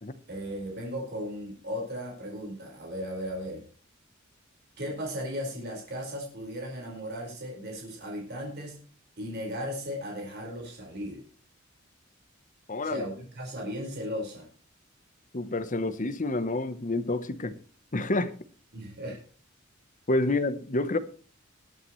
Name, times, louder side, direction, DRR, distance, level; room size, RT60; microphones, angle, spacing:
voice 1, 0.3-3.6 4.8-8.8 9.2-11.2 12.8-14.5 18.7-19.2, equal, 55° right, 5.0 m, -36 dB
voice 2, 12.7-13.1 15.3-17.6 17.9-18.3 20.1-21.0, left 2 dB, 40° left, 1.0 m, -28 dB
21.0 x 9.1 x 3.2 m
head